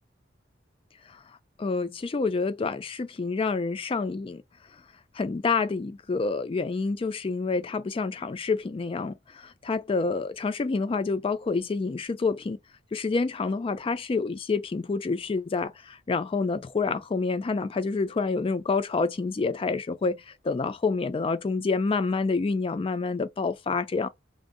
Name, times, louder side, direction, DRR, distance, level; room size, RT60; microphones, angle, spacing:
voice 1, 1.6-4.4 5.2-12.6 12.9-24.1, left 4 dB, 30° left, 0.3 m, -28 dB
2.6 x 2.0 x 3.7 m
head